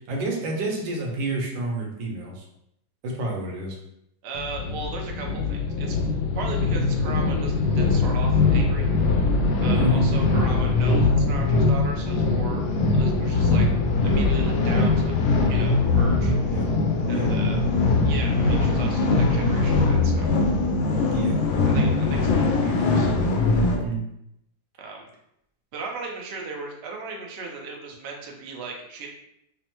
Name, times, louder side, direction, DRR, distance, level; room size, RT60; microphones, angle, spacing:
voice 1, 0.1-2.4 3.0-3.8 9.7-10.3 16.5-16.6 17.1-17.3 21.1-21.4 23.7-24.0, right 1 dB, 90° right, 0 dB, 1.5 m, -29 dB
voice 2, 4.2-6.0 6.3-8.9 9.6-12.7 12.9-13.7 14.0-15.1 15.5-16.3 17.1-17.6 18.0-20.3 21.7-23.1 24.8-25.0 25.7-29.1, right 4 dB, 70° right, 0 dB, 0.6 m, -37 dB
sound 1, 4.3-23.8, left 3 dB, 85° left, 1.4 m, -21 dB
5.4 x 2.1 x 2.9 m, 0.79 s
omnidirectional pair, 2.0 m